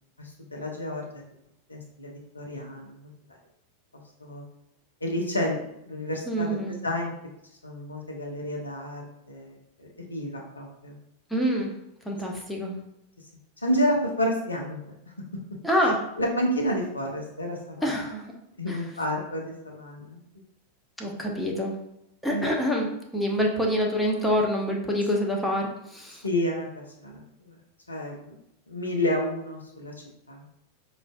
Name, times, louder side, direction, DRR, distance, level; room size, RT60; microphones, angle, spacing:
voice 1, 0.2-1.1 1.7-3.1 4.2-4.4 5.0-5.6 5.8-7.1 7.6-9.5 9.8-11.0 13.6-15.0 16.2-17.9 18.6-20.2 22.3-22.4 26.2-27.6 27.9-28.3 28.7-29.9 30.3-30.4, equal, 80° left, -1 dB, 0.7 m, -30 dB
voice 2, 6.3-6.8 11.3-11.7 12.1-12.8 15.6-16.1 17.8-18.3 18.7-18.8 21.0-21.8 22.2-26.2, equal, 5° left, -1 dB, 0.6 m, -26 dB
5.0 x 2.4 x 2.2 m, 0.81 s
figure-of-eight pair, 90°, 0 cm